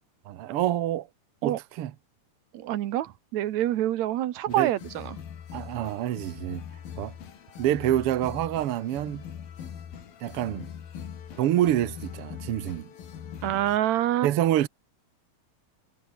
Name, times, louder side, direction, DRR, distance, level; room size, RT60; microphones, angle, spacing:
voice 1, 0.3-1.1 1.4-1.9 4.5-4.7 5.5-6.6 7.0-7.1 7.6-9.2 10.2-10.6 11.4-12.9 13.5-13.6 14.2-14.7, right 12 dB, 90° right, 1.2 m, -27 dB
voice 2, 2.5-5.2 13.4-14.3, right 13 dB, 65° right, 1.9 m, -26 dB
sound 1, 4.5-13.8, left 8 dB, 75° left, 4.6 m, -42 dB
omnidirectional pair, 4.2 m